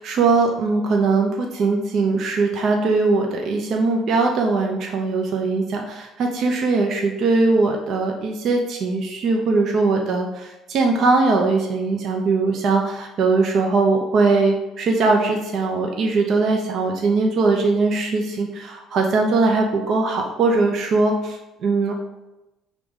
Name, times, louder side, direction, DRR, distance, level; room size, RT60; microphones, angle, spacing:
voice 1, 0.0-21.9, right 3 dB, 60° right, 2 dB, 0.7 m, -20 dB
4.8 x 3.7 x 5.5 m, 0.99 s
cardioid pair, 115°, 0 cm